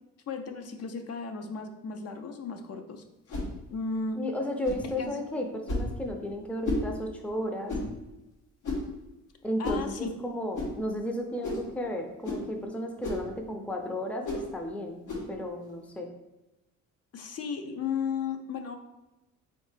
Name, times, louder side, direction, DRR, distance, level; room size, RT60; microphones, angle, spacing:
voice 1, 0.3-3.0 3.7-4.2 5.0-5.2 9.6-10.1 17.1-18.8, left 5 dB, 55° left, 5 dB, 0.5 m, -34 dB
sound 1, 3.3-3.5 4.6-4.9 5.7-5.9 6.6-6.9 7.7-7.9 8.6-8.9 9.6-9.9 10.5-10.7 11.4-11.7 12.2-12.5 13.0-13.3 14.2-14.5 15.1-15.3, left 2 dB, 85° left, 1.4 m, -32 dB
voice 2, 4.2-7.7 9.4-15.0 15.3-16.1, left 1 dB, 5° left, 3 dB, 0.5 m, -34 dB
3.9 x 3.2 x 3.2 m, 1.0 s
cardioid pair, 90°, 30 cm